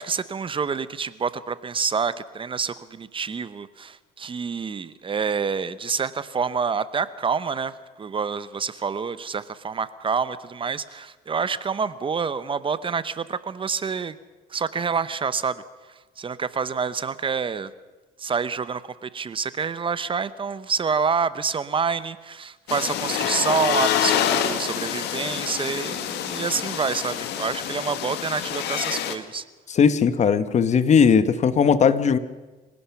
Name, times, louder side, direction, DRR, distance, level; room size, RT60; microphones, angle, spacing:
voice 1, 0.0-14.2 14.5-15.6 15.9-17.7 18.2-29.4, right 5 dB, 30° right, 15 dB, 0.9 m, -27 dB
sound 1, 22.7-29.1, left 10 dB, 85° left, 1.9 m, -27 dB
voice 2, 29.7-32.2, left 6 dB, 45° left, 13 dB, 1.2 m, -18 dB
26.0 x 17.5 x 5.9 m, 1.2 s
cardioid pair, 110°, 17 cm